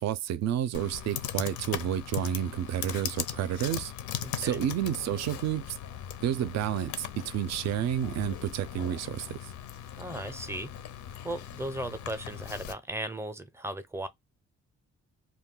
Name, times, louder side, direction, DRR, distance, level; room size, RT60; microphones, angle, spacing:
voice 1, 0.0-3.9 4.4-5.8 6.2-9.4, right 10 dB, 60° right, 0.4 m, -30 dB
Computer keyboard, 0.7-12.7, left 10 dB, 75° left, 0.5 m, -39 dB
voice 2, 4.2-4.6 10.0-10.7 11.2-14.1, right 1 dB, 10° right, 0.5 m, -36 dB
2.3 x 2.1 x 3.6 m
cardioid pair, 90°, 30 cm